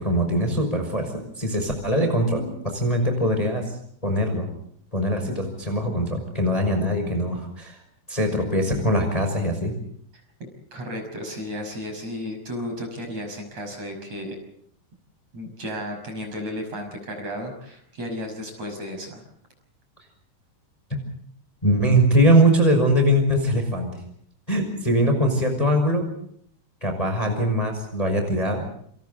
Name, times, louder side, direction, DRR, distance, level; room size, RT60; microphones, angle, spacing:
voice 1, 0.0-3.6 4.0-4.5 4.9-7.8 8.1-9.7 20.9-21.0 21.6-24.0 24.5-26.1 26.8-28.7, equal, 10° left, 4 dB, 5.4 m, -22 dB
voice 2, 10.4-14.3 15.3-19.2, left 1 dB, 40° right, 4 dB, 6.8 m, -34 dB
29.5 x 28.0 x 4.1 m, 0.66 s
omnidirectional pair, 4.8 m